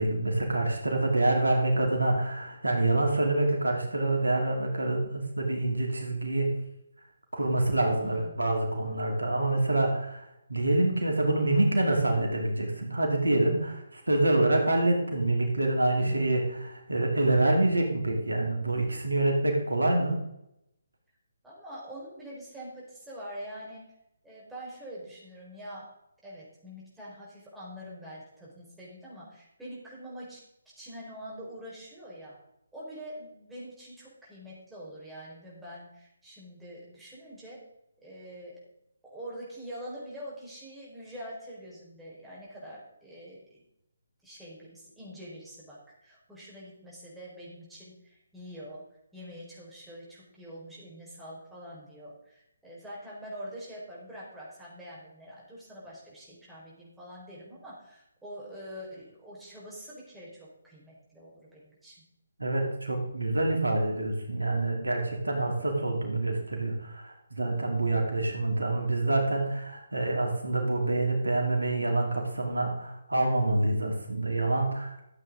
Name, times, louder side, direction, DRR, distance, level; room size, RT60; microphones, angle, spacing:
voice 1, 0.0-6.5 7.3-10.2 10.5-20.2 62.4-75.1, right 2 dB, 80° right, 1 dB, 2.7 m, -26 dB
voice 2, 8.0-8.4 16.0-16.4 21.4-23.9 24.2-25.9 26.2-30.4 30.8-32.4 32.7-37.6 38.0-38.6 39.1-43.6 44.2-48.8 49.1-62.0, equal, 5° right, -7 dB, 4.4 m, -45 dB
13.5 x 8.2 x 3.7 m, 0.81 s
figure-of-eight pair, 145°, 0 cm